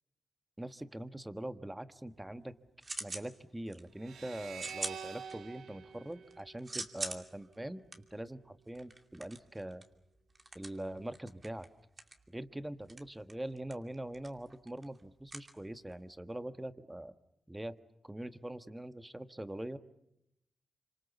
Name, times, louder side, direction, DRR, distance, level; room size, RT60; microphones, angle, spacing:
voice 1, 0.6-2.5 3.0-7.8 8.1-9.8 10.5-11.7 12.3-17.1 17.5-17.8 18.0-19.8, right 1 dB, 15° right, 11 dB, 1.4 m, -43 dB
sound 1, 2.1-3.3 3.7-4.1 4.5-5.7 6.1-16.1, right 2 dB, 35° right, 2.6 m, -45 dB
sound 2, 4.0-7.3, right 7 dB, 85° right, 1.9 m, -47 dB
26.5 x 25.5 x 7.2 m, 0.80 s
cardioid pair, 50°, 0 cm